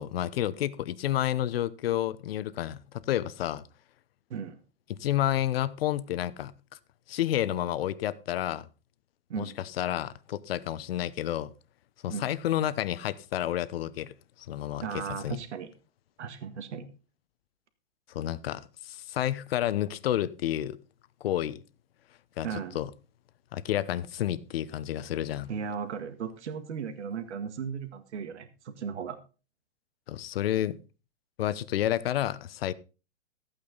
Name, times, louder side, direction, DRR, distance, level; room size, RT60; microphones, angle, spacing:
voice 1, 0.0-3.6 4.9-6.5 7.1-8.7 9.4-11.5 12.0-14.1 14.5-15.4 18.1-20.8 21.2-21.6 22.4-22.9 23.5-25.5 30.1-30.8 31.4-32.7, left 12 dB, 55° left, 1.0 m, -30 dB
voice 2, 14.8-15.7 16.2-16.9 22.4-22.8 25.5-29.2, right 6 dB, 75° right, 1.9 m, -36 dB
14.5 x 8.8 x 4.0 m
hypercardioid pair, 145°, 35 cm